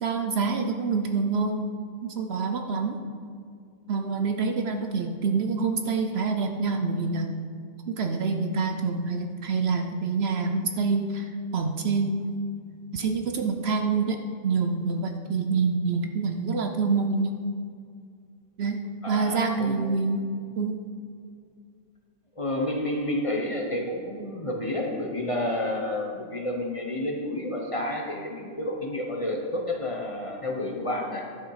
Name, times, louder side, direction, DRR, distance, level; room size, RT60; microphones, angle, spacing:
voice 1, 0.0-1.6 2.0-3.0 3.9-7.3 7.9-12.4 12.9-14.2 14.4-17.4 18.6-18.8 19.1-20.2 20.6-20.8, right 4 dB, 60° right, 5 dB, 0.9 m, -26 dB
voice 2, 19.0-20.0 22.4-31.3, left 1 dB, 30° left, 0 dB, 1.0 m, -30 dB
11.5 x 6.8 x 4.8 m, 2.2 s
omnidirectional pair, 1.3 m